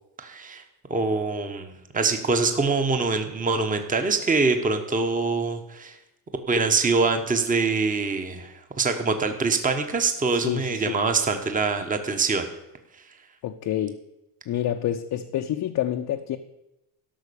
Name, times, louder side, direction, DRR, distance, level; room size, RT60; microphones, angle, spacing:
voice 1, 0.2-0.6 0.9-6.0 6.5-12.5, right 4 dB, 20° right, 6 dB, 1.1 m, -24 dB
voice 2, 10.3-11.0 13.4-14.0 14.5-16.4, left 11 dB, 50° left, 4 dB, 0.7 m, -28 dB
13.0 x 5.9 x 6.9 m, 0.92 s
cardioid pair, 120°, 43 cm